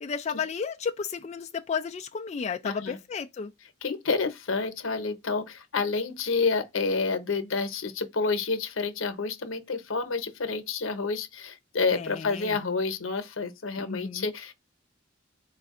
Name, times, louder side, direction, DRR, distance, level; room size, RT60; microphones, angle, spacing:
voice 1, 0.0-3.5 11.9-12.6 13.8-14.3, left 6 dB, 35° left, 0.3 m, -33 dB
voice 2, 2.6-3.0 3.8-14.5, left 4 dB, 85° left, 0.8 m, -29 dB
4.2 x 2.3 x 3.6 m
head